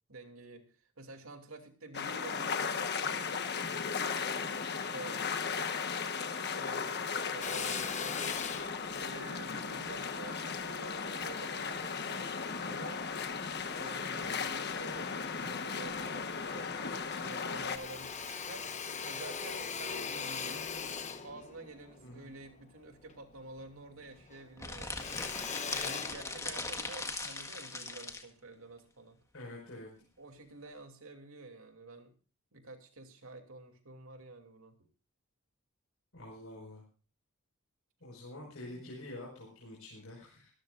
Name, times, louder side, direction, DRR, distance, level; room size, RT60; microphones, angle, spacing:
voice 1, 0.1-4.2 4.8-5.3 6.5-8.4 9.0-13.2 13.7-25.1 25.7-29.2 30.2-32.1 32.5-34.7 38.6-38.9, right 2 dB, 75° right, 5 dB, 2.8 m, -49 dB
sound 1, 1.9-17.8, left 5 dB, 50° left, 1.3 m, -36 dB
Drill, 7.4-11.9 12.5-13.7 14.1-15.1 15.4-15.5 15.8-16.8 17.0-23.7 24.0-26.9, left 6 dB, 35° left, 1.1 m, -41 dB
sound 2, 24.6-28.3, left 3 dB, 15° left, 1.5 m, -39 dB
voice 2, 29.3-29.9 36.1-36.8 38.0-40.5, left 1 dB, 70° left, -3 dB, 5.3 m, -47 dB
24.0 x 13.5 x 2.5 m, 0.36 s
head